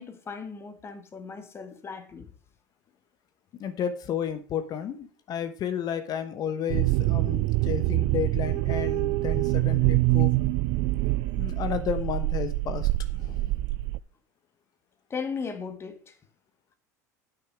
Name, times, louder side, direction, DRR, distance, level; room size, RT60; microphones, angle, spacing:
voice 1, 0.0-2.3 15.1-16.1, left 5 dB, 25° left, 1.8 m, -37 dB
voice 2, 3.6-10.3 11.4-12.9 13.2-13.5, left 8 dB, 45° left, 1.1 m, -32 dB
sound 1, 6.7-14.0, right 20 dB, 60° right, 0.4 m, -25 dB
9.7 x 6.1 x 5.0 m
hypercardioid pair, 85°, 9 cm